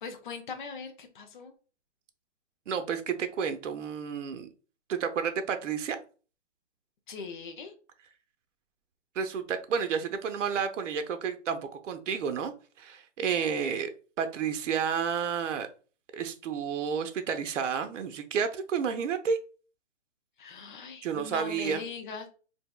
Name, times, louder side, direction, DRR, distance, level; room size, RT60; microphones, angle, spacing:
voice 1, 0.0-1.5 7.1-7.7 20.4-22.3, left 5 dB, 45° left, 5 dB, 0.5 m, -40 dB
voice 2, 2.7-4.5 4.9-6.0 9.2-13.9 14.2-15.7 16.1-19.4 21.0-21.8, right 7 dB, 85° right, 8 dB, 0.6 m, -31 dB
3.4 x 2.6 x 2.2 m, 0.37 s
hypercardioid pair, 180°, 36 cm